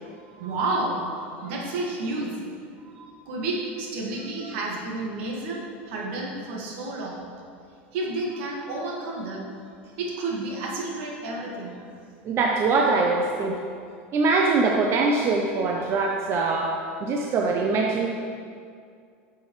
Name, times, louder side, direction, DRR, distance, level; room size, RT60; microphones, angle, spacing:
voice 1, 0.0-2.4 2.8-7.2 7.9-9.5 9.9-11.9, right 2 dB, 70° right, -2 dB, 1.9 m, -31 dB
voice 2, 12.2-13.6 14.1-16.7 17.0-18.1, right 3 dB, 40° right, 0 dB, 0.8 m, -23 dB
10.0 x 7.0 x 3.2 m, 2.3 s
hypercardioid pair, 100°, 7 cm